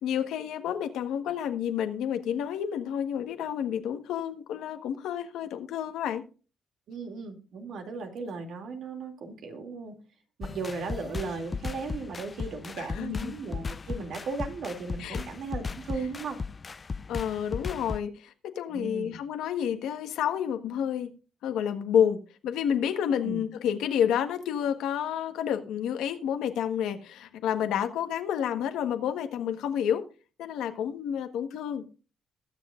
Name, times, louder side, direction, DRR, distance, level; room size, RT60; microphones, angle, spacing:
voice 1, 0.0-6.2 12.8-13.3 15.0-15.2 17.1-21.1 21.4-30.0 30.4-31.8, left 9 dB, 85° left, 1.3 m, -29 dB
voice 2, 6.9-9.9 10.4-16.4 18.7-19.2 23.2-23.4, right 4 dB, 70° right, 2.5 m, -36 dB
sound 1, 10.4-18.0, left 4 dB, 30° left, 0.4 m, -37 dB
21.0 x 7.2 x 2.5 m
cardioid pair, 90°, 0 cm